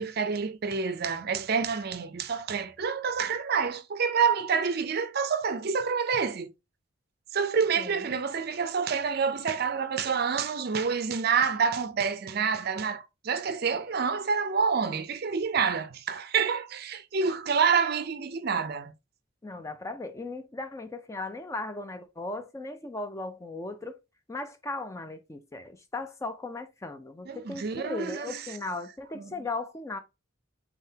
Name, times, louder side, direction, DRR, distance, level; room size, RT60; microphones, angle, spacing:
voice 1, 0.0-6.5 7.3-18.9 27.3-28.6 29.1-29.4, right 6 dB, 50° right, 0.5 m, -28 dB
voice 2, 19.4-24.0 24.3-30.0, left 2 dB, 15° left, 0.4 m, -37 dB
3.8 x 3.6 x 2.7 m
head